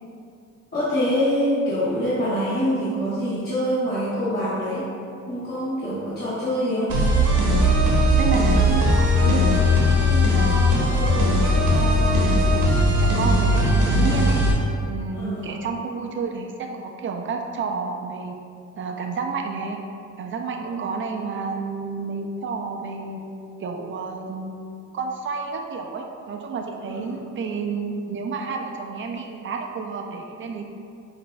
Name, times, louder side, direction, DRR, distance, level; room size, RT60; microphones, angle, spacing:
voice 1, 0.7-4.9 5.3-6.9 15.1-15.5 26.9-27.2, equal, 35° left, -11 dB, 0.9 m, -25 dB
sound 1, 6.9-14.5, left 1 dB, 85° right, 0.9 m, -18 dB
voice 2, 8.2-11.3 11.7-14.4 14.9-18.4 18.8-19.8 20.2-23.2 23.6-24.6 24.9-30.6, right 4 dB, 40° right, 3 dB, 0.5 m, -30 dB
6.0 x 2.5 x 2.2 m, 2.4 s
cardioid pair, 90°, 30 cm